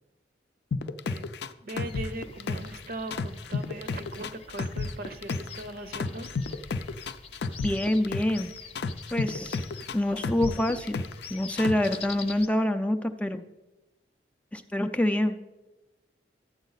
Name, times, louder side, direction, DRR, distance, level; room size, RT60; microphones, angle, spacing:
sound 1, 0.7-2.8 3.1-5.6 5.9-8.4 8.7-11.3 11.6-11.9, left 4 dB, 65° left, 0.4 m, -31 dB
voice 1, 1.6-6.3 7.6-7.8 11.7-12.2, right 1 dB, 55° right, 11 dB, 0.7 m, -40 dB
sound 2, 1.7-12.5, left 5 dB, 35° left, 0.7 m, -46 dB
voice 2, 7.6-8.5 9.1-9.6 9.9-13.4 14.5-15.4, left 1 dB, 10° left, 7 dB, 0.4 m, -26 dB
12.0 x 8.1 x 4.0 m, 1.0 s
head